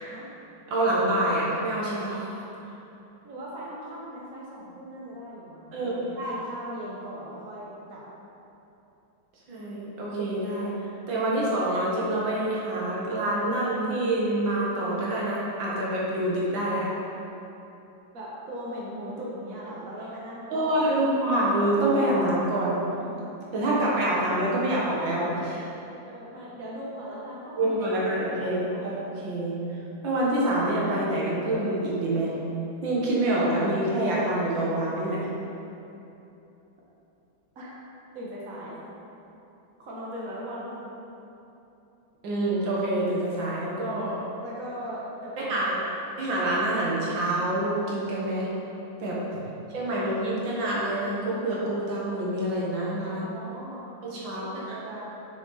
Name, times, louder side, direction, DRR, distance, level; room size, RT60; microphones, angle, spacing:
voice 1, 0.7-2.4 5.7-6.4 9.5-10.7 11.1-16.9 20.5-22.8 23.5-25.7 27.6-28.6 28.8-29.6 30.0-32.3 32.8-35.3 42.2-44.2 45.5-45.8 46.2-48.5 49.0-49.2 49.7-53.3 54.0-54.4, right 1 dB, 80° right, -6 dB, 2.1 m, -26 dB
voice 2, 3.2-8.0 18.1-21.1 26.1-28.9 37.6-37.7 38.1-38.8 39.8-40.7 44.4-45.9 53.1-53.9 54.2-55.2, equal, 45° right, -6 dB, 1.8 m, -39 dB
6.8 x 6.3 x 4.1 m, 2.9 s
omnidirectional pair, 2.0 m